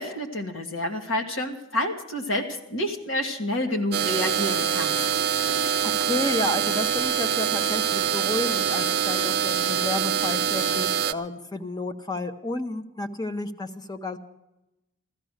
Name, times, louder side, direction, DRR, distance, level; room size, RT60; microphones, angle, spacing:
voice 1, 0.0-5.0, left 1 dB, 70° left, 4 dB, 2.1 m, -29 dB
sound 1, 3.9-11.1, right 8 dB, 55° right, 0.6 m, -25 dB
voice 2, 5.8-14.2, left 1 dB, 20° left, 8 dB, 0.9 m, -31 dB
15.5 x 13.5 x 6.5 m, 0.93 s
head